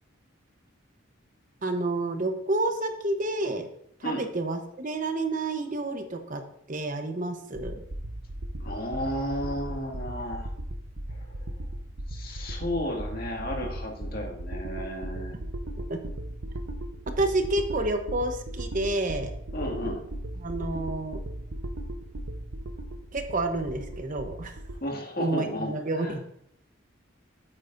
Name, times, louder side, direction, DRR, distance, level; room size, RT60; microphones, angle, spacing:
voice 1, 1.6-3.7 4.0-6.4 6.7-7.8 15.9-16.0 17.2-19.3 20.4-21.2 23.1-24.5 25.2-26.2, right 2 dB, 40° right, 6 dB, 0.9 m, -29 dB
sound 1, 7.5-24.8, right 1 dB, 85° right, 0.9 m, -37 dB
voice 2, 8.6-10.5 11.1-11.5 12.1-15.3 19.5-20.0 24.8-26.2, equal, 50° left, 0 dB, 2.0 m, -33 dB
12.5 x 8.8 x 2.6 m, 0.70 s
head